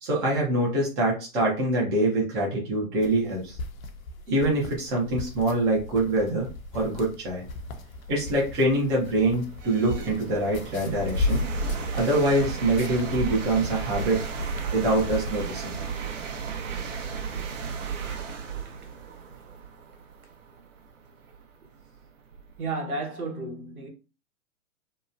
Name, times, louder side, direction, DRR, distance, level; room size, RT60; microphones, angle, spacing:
voice 1, 0.0-3.6 4.3-6.5 6.7-7.4 8.1-11.4 11.9-14.2 14.7-15.8, right 1 dB, 10° right, 0.4 m, -24 dB
sound 1, 3.0-15.3, left 2 dB, 70° left, 0.6 m, -35 dB
sound 2, 7.2-7.3 7.9-22.7, right 6 dB, 60° right, 0.7 m, -35 dB
voice 2, 22.6-23.9, right 3 dB, 80° right, 1.0 m, -33 dB
2.8 x 2.1 x 2.3 m
hypercardioid pair, 120°, 43 cm